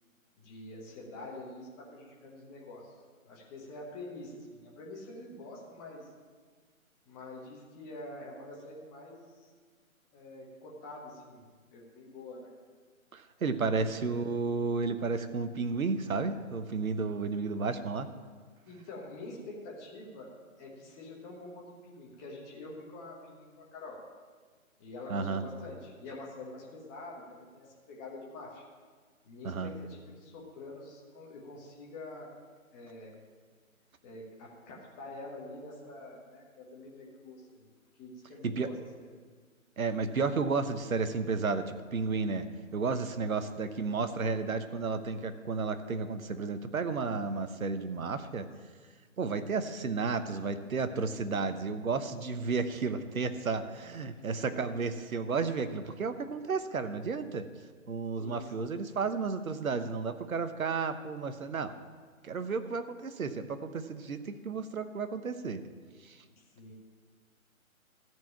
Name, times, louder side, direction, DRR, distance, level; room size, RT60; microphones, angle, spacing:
voice 1, 0.4-2.9 3.3-6.1 7.1-9.5 10.1-11.4 11.7-12.5 13.7-14.0 18.7-20.3 20.6-24.0 24.8-28.6 29.2-32.3 32.7-33.1 34.0-37.6 38.0-38.8 54.1-54.7 58.1-58.7 66.3-66.7, left 2 dB, 15° left, -2 dB, 1.2 m, -46 dB
voice 2, 13.1-18.1 25.1-25.4 29.4-29.7 38.4-38.7 39.8-42.5 42.7-48.5 49.2-57.5 57.9-61.7 62.2-65.6 66.0-66.2, right 4 dB, 70° right, 10 dB, 1.0 m, -32 dB
13.5 x 4.7 x 8.5 m, 1.5 s
figure-of-eight pair, 150°, 43 cm